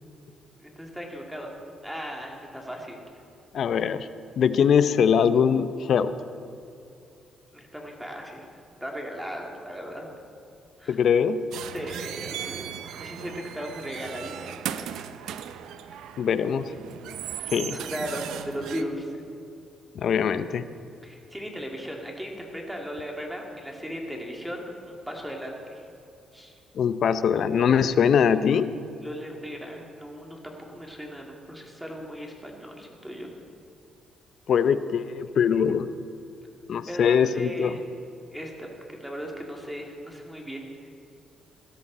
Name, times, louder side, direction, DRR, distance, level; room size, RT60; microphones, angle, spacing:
voice 1, 0.6-1.5 1.8-3.0 7.5-8.4 8.8-10.0 10.8-11.0 11.7-12.6 13.0-14.9 17.7-19.1 21.0-25.8 26.3-26.5 29.0-33.4 36.8-37.8 38.3-40.9, equal, 5° right, 0 dB, 2.6 m, -37 dB
voice 2, 3.5-4.1 4.4-6.1 10.9-11.4 16.2-16.7 17.5-17.8 20.0-20.6 26.8-28.7 34.5-35.9 36.7-37.8, left 7 dB, 60° left, 13 dB, 0.6 m, -22 dB
sound 1, 11.5-18.8, right 10 dB, 85° right, 0.6 m, -37 dB
17.0 x 12.5 x 4.2 m, 2.6 s
cardioid pair, 90°, 0 cm